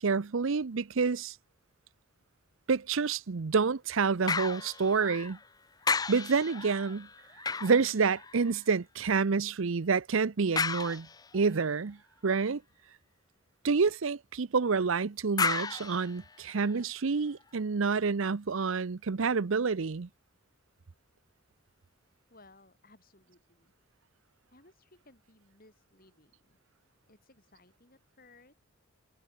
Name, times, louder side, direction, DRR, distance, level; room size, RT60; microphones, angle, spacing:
voice 1, 0.0-1.3 2.7-5.4 6.1-7.1 7.6-11.1 11.3-12.0 12.2-12.6 13.6-20.1, right 5 dB, 70° right, 0.6 m, -28 dB
sound 1, 4.3-5.5 5.8-8.7 10.6-11.5 15.4-16.8 17.4-17.5, left 5 dB, 20° left, 0.5 m, -34 dB
voice 2, 22.3-23.7 24.5-26.6 27.1-28.5, left 2 dB, 45° left, 6.9 m, -61 dB
head